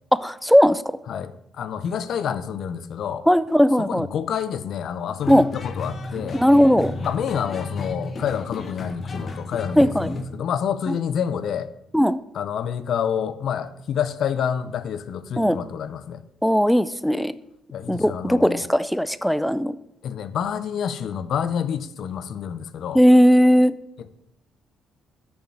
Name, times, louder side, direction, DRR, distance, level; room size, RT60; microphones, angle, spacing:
voice 1, 0.1-0.8 3.3-4.1 5.3-5.5 6.3-6.9 9.8-10.2 10.9-11.0 11.9-12.2 15.4-15.6 16.4-17.3 17.9-19.7 22.9-23.7, equal, ahead, 15 dB, 0.3 m, -17 dB
voice 2, 1.1-3.2 3.8-6.4 7.0-11.7 12.3-16.2 17.7-18.6 20.0-23.0, left 8 dB, 65° left, 13 dB, 0.6 m, -28 dB
sound 1, 5.2-10.2, left 3 dB, 40° left, 1.0 m, -33 dB
6.5 x 5.8 x 7.3 m, 0.80 s
cardioid pair, 110°, 0 cm